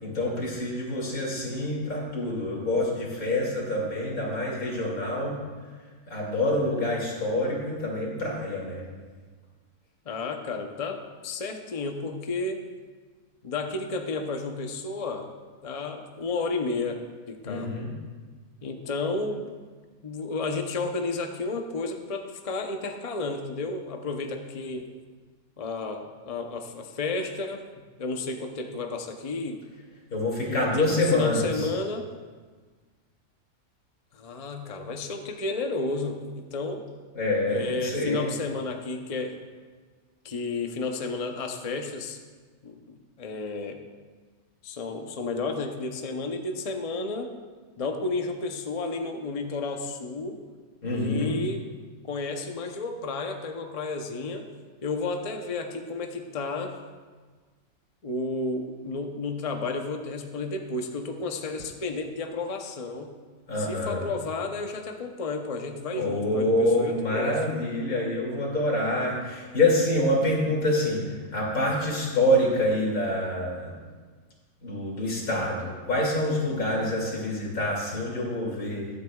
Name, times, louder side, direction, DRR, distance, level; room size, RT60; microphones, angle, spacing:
voice 1, 0.0-5.4 6.1-8.8 17.4-17.9 30.1-31.7 37.1-38.2 50.8-51.4 63.5-64.0 66.0-73.7 74.6-78.9, left 1 dB, 70° left, -3 dB, 3.0 m, -26 dB
voice 2, 10.1-12.6 13.4-15.3 15.6-17.0 17.3-17.7 18.6-19.6 20.0-24.9 25.6-27.6 28.0-29.6 30.5-32.1 34.1-36.8 37.5-39.4 40.2-42.2 42.6-43.8 44.6-47.3 47.8-50.4 50.9-51.6 52.0-54.5 54.8-56.8 58.0-63.1 63.6-67.4, left 3 dB, 35° left, 4 dB, 0.6 m, -32 dB
22.5 x 8.1 x 2.3 m, 1.4 s
omnidirectional pair, 1.5 m